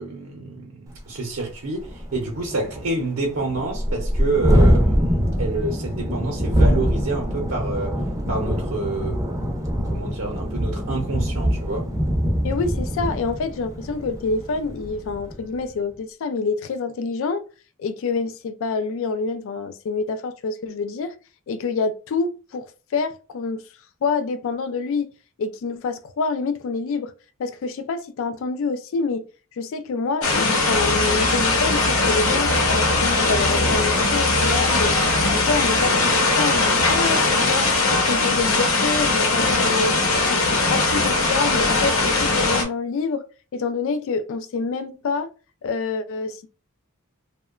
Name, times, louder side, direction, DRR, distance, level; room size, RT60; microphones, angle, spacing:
voice 1, 0.0-8.0 8.3-9.2 9.9-11.9, right 2 dB, 70° right, 0.7 m, -28 dB
Thunderstorm, 1.0-1.1 1.4-1.5 1.8-15.4, equal, 15° right, 0.5 m, -23 dB
voice 2, 12.4-17.4 17.8-21.2 21.5-22.7 22.9-23.6 24.0-25.1 25.4-27.1 27.4-29.2 29.5-37.8 38.1-40.0 40.3-43.2 43.5-45.3 45.6-46.5, left 4 dB, 65° left, 0.3 m, -27 dB
sound 1, 30.2-42.6, left 3 dB, 80° left, 0.8 m, -20 dB
sound 2, 30.7-36.4, equal, 50° left, 0.9 m, -31 dB
2.8 x 2.1 x 2.3 m
head